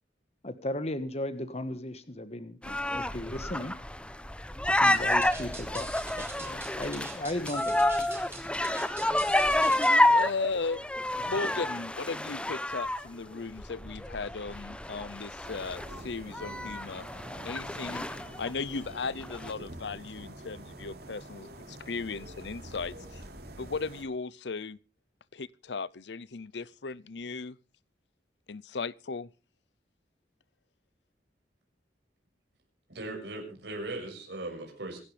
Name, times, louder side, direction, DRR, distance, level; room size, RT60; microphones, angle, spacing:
voice 1, 0.4-3.7 4.7-5.9 6.2-7.9, left 1 dB, 35° left, 1.4 m, -36 dB
sound 1, 2.6-13.0 13.6-18.5 18.8-18.9 19.2-19.5, left 1 dB, 5° left, 0.8 m, -29 dB
sound 2, 4.9-10.0, right 3 dB, 15° right, 5.6 m, -44 dB
voice 2, 10.1-10.8 11.2-17.1 17.4-23.2 23.6-24.8 25.3-27.6 28.5-29.3, left 4 dB, 75° left, 0.7 m, -36 dB
sound 3, 15.4-24.0, right 1 dB, 60° right, 3.5 m, -46 dB
voice 3, 32.9-35.0, right 2 dB, 80° right, 6.3 m, -38 dB
26.0 x 12.0 x 3.3 m
head